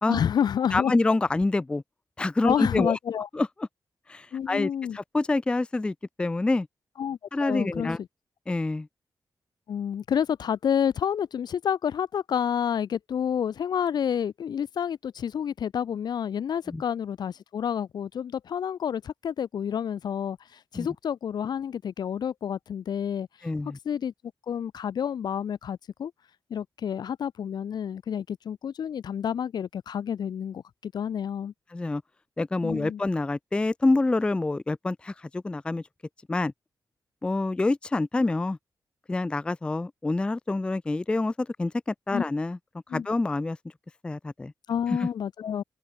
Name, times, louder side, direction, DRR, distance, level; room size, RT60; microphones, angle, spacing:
voice 1, 0.1-0.9 2.4-3.3 4.3-5.0 7.0-7.9 9.7-23.3 23.8-24.1 24.5-26.1 26.5-31.5 32.6-33.0 42.1-42.2 42.9-43.1 44.7-45.6, left 8 dB, 70° left, 0.7 m, -29 dB
voice 2, 0.7-1.8 2.2-3.0 3.3-3.7 4.1-6.7 7.3-8.0 8.5-8.9 16.7-16.8 20.7-20.9 23.4-23.8 31.7-32.0 32.4-35.8 36.3-36.5 37.2-38.6 39.1-42.6 42.9-43.6 44.0-44.5 44.9-45.1, left 2 dB, 15° left, 0.3 m, -27 dB
open air
wide cardioid pair, 165°, 7 cm